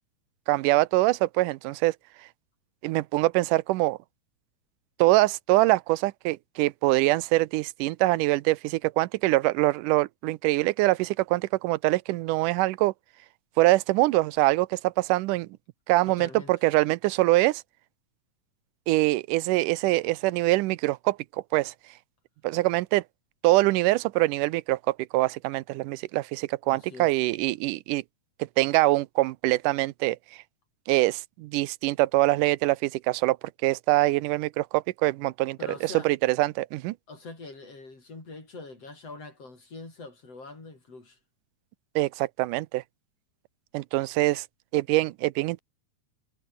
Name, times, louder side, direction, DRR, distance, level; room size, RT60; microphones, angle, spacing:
voice 1, 0.5-2.0 2.8-4.0 5.0-12.9 13.6-15.5 15.9-17.6 18.9-21.2 21.5-21.7 22.4-23.0 23.4-28.0 28.6-30.2 30.9-33.4 33.6-35.6 35.8-36.9 42.0-42.8 43.7-44.4 44.7-45.6, right 19 dB, 85° right, 2.2 m, -24 dB
voice 2, 16.0-16.5 26.7-27.1 35.6-36.1 37.1-41.2, left 3 dB, 50° left, 8.2 m, -43 dB
omnidirectional pair, 3.7 m